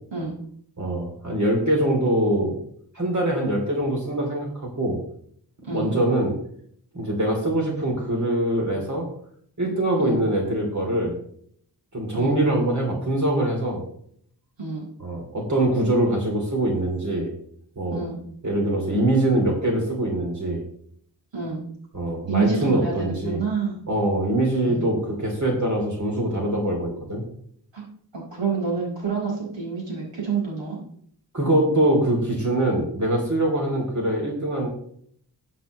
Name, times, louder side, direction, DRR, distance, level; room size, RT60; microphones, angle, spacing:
voice 1, 0.8-2.6 2.9-5.0 5.7-6.3 6.9-9.1 9.6-11.2 11.9-13.8 15.0-17.3 17.8-18.0 18.4-20.6 21.9-23.4 23.9-27.2 31.3-34.7, right 1 dB, 40° right, 0 dB, 3.0 m, -23 dB
voice 2, 22.3-23.8 24.6-24.9 27.7-27.8 28.1-30.8, right 5 dB, 80° right, -3 dB, 4.8 m, -28 dB
13.5 x 7.6 x 3.1 m, 0.63 s
cardioid pair, 70°, 43 cm